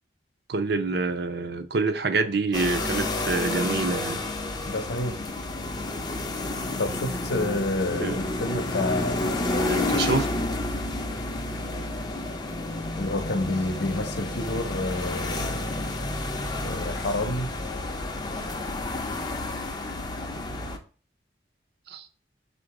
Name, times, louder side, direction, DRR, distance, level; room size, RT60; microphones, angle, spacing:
voice 1, 0.5-4.2 8.0-8.2 9.7-10.3 21.9-22.1, right 3 dB, 60° right, 0.5 m, -26 dB
sound 1, 2.5-20.8, left 2 dB, 25° left, 0.5 m, -30 dB
voice 2, 4.6-5.1 6.8-10.0 13.0-15.7 16.6-17.5, left 2 dB, 65° left, 0.7 m, -29 dB
3.8 x 2.5 x 4.6 m
head